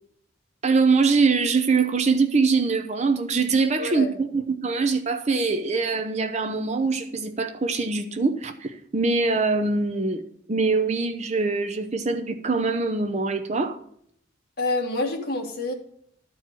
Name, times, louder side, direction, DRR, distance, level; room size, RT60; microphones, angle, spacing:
voice 1, 0.6-10.2 10.5-13.8, right 4 dB, 35° right, 0.7 m, -23 dB
voice 2, 3.8-4.1 14.6-15.7, left 2 dB, 50° left, 2.3 m, -27 dB
13.0 x 4.6 x 7.5 m
head